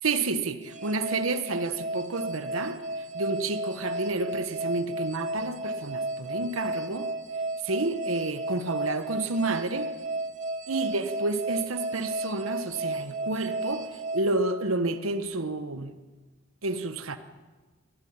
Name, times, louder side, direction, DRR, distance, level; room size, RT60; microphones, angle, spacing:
voice 1, 0.0-2.8 3.1-7.1 7.6-9.9 10.7-13.9 14.1-15.9 16.6-17.2, right 3 dB, 85° right, 1.3 m, -30 dB
sound 1, 0.6-15.0, right 2 dB, 35° right, 2.0 m, -34 dB
24.0 x 16.0 x 8.8 m
head